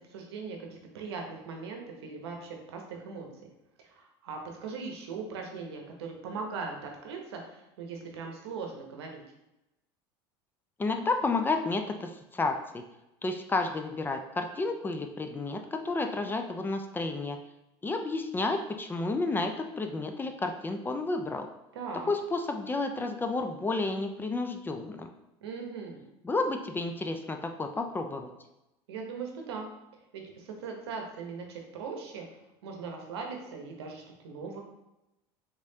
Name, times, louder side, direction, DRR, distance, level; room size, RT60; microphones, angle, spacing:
voice 1, 0.1-3.3 3.8-9.2 21.7-22.1 25.4-26.0 28.9-29.7 30.1-32.3 32.6-34.6, right 5 dB, 85° right, 2 dB, 0.8 m, -39 dB
voice 2, 10.8-12.8 13.2-17.4 17.8-21.5 22.1-25.1 26.2-28.3, left 3 dB, 15° left, 5 dB, 0.3 m, -31 dB
3.5 x 3.2 x 2.7 m, 0.93 s
supercardioid pair, 100°, 13 cm